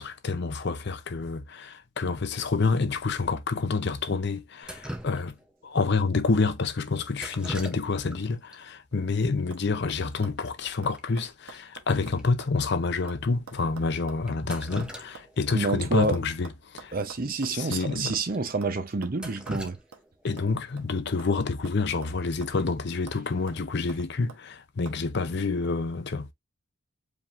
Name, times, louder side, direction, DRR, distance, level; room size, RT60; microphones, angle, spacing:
voice 1, 0.0-5.3 5.6-17.0 17.5-18.1 20.2-26.3, left 4 dB, 50° left, 0.6 m, -28 dB
Drip, 4.6-5.6 7.1-8.2 8.5-8.6 9.5-9.6 9.9-10.1 10.4-10.5 11.0-11.1 11.5-11.6 12.2-12.3 13.0-13.1 14.3-15.5 15.8-15.9 17.3-17.4 17.8-17.9 18.3-18.4 18.9-20.5 22.5-22.8 23.2-23.6, right 1 dB, 5° right, 0.6 m, -40 dB
sound 1, 8.7-9.1 9.5-9.6 9.9-12.6 12.8-15.7 16.1-18.3 18.6-18.8 19.0-19.2 19.5-19.6 19.9-20.1 20.4-21.4 21.7-22.7 23.1-23.2 23.5-24.4 24.9-25.0, right 4 dB, 90° right, 1.0 m, -48 dB
voice 2, 15.5-16.2 16.9-19.8, right 3 dB, 40° right, 0.6 m, -28 dB
4.9 x 3.4 x 2.5 m
head